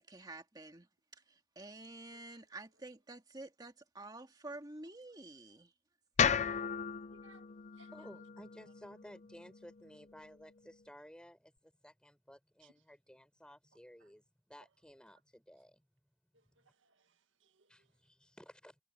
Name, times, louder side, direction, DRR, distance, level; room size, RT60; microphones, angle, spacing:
voice 1, 0.0-5.7 6.2-6.3, right 2 dB, 20° right, 2.0 m, -50 dB
sound 1, 6.2-10.3, left 7 dB, 40° left, 0.5 m, -36 dB
voice 2, 7.1-7.4 7.8-7.9 12.6-12.7 16.6-17.9, right 4 dB, 85° right, 1.9 m, -66 dB
voice 3, 7.9-15.8 16.6-16.7 17.7-18.8, equal, 5° left, 6.5 m, -56 dB
head